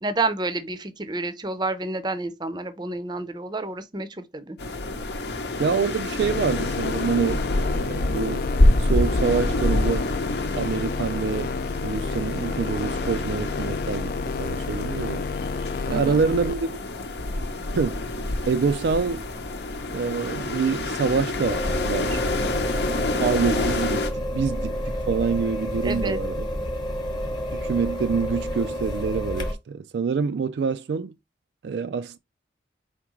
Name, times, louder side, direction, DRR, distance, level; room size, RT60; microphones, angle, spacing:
voice 1, 0.0-4.6 15.9-16.2 25.8-26.2, right 2 dB, 25° right, 0.6 m, -29 dB
sound 1, 4.6-24.1, left 2 dB, 70° left, 0.7 m, -27 dB
voice 2, 5.6-8.5 8.8-10.1 10.5-11.5 11.8-15.3 15.9-16.6 17.7-18.0 18.5-19.3 19.9-22.6 23.2-26.5 27.5-31.2 31.6-32.2, right 5 dB, 70° right, 0.3 m, -26 dB
sound 2, 6.2-16.5, left 4 dB, 50° left, 0.3 m, -30 dB
sound 3, 21.4-29.5, equal, 25° left, 0.9 m, -29 dB
4.6 x 3.6 x 3.0 m
head